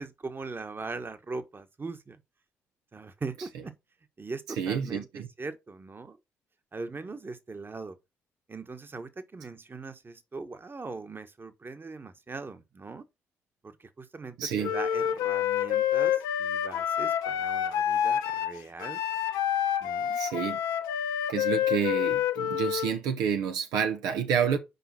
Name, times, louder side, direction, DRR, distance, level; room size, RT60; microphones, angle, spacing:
voice 1, 0.0-2.2 2.9-3.7 4.2-5.1 5.4-6.2 6.7-8.0 8.5-13.0 13.6-19.0 19.8-20.2, right 3 dB, 35° right, 1.4 m, -40 dB
voice 2, 4.5-5.3 14.4-14.7 20.1-20.6 21.3-24.6, right 7 dB, 80° right, 0.9 m, -29 dB
Wind instrument woodwind instrument, 14.6-23.0, left 9 dB, 80° left, 0.7 m, -28 dB
5.4 x 5.1 x 5.9 m
hypercardioid pair, 45°, 6 cm